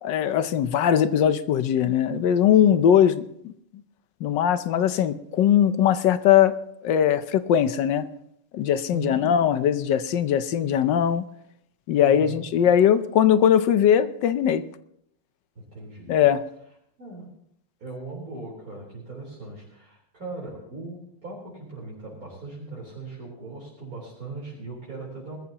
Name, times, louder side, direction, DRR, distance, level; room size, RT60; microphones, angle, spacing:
voice 1, 0.0-3.5 4.2-6.5 6.8-8.0 8.5-11.2 11.9-14.6 16.1-16.4, left 9 dB, 65° left, 12 dB, 1.2 m, -20 dB
voice 2, 8.9-9.3 12.0-12.5 15.7-16.2 17.0-17.3 17.8-25.4, right 3 dB, 40° right, -6 dB, 4.4 m, -39 dB
21.0 x 14.0 x 2.9 m, 0.73 s
omnidirectional pair, 2.4 m